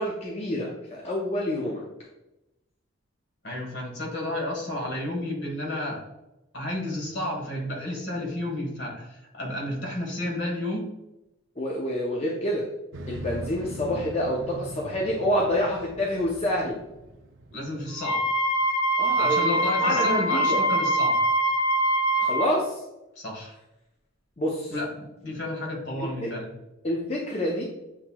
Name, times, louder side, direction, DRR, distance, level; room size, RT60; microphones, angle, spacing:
voice 1, 0.0-1.8 11.6-12.7 13.1-16.8 19.0-19.5 19.8-20.6 22.2-22.8 24.4-24.7 25.3-25.4 26.0-26.3 26.8-27.6, left 1 dB, 30° left, -3 dB, 0.5 m, -27 dB
voice 2, 3.4-6.0 6.5-11.0 17.5-18.2 19.2-21.2 23.2-23.6 24.7-26.5, left 1 dB, 60° left, -1 dB, 1.4 m, -31 dB
Motorcycle, 12.9-18.2, right 2 dB, 65° right, 0.5 m, -40 dB
Wind instrument woodwind instrument, 18.0-22.5, right 1 dB, 85° left, 0.5 m, -23 dB
7.5 x 2.9 x 2.2 m, 0.95 s
head